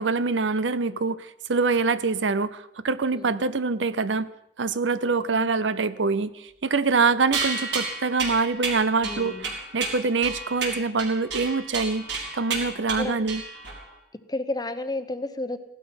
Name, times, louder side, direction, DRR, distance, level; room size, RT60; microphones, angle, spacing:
voice 1, 0.0-4.3 4.6-9.3 9.7-12.1 12.3-13.4, right 4 dB, 90° right, 15 dB, 0.7 m, -25 dB
sound 1, 7.3-13.9, right 4 dB, 70° right, 4.2 m, -31 dB
voice 2, 9.0-9.5 13.0-13.2 14.3-15.6, left 2 dB, 20° left, 10 dB, 1.0 m, -32 dB
16.5 x 12.0 x 5.9 m, 0.80 s
head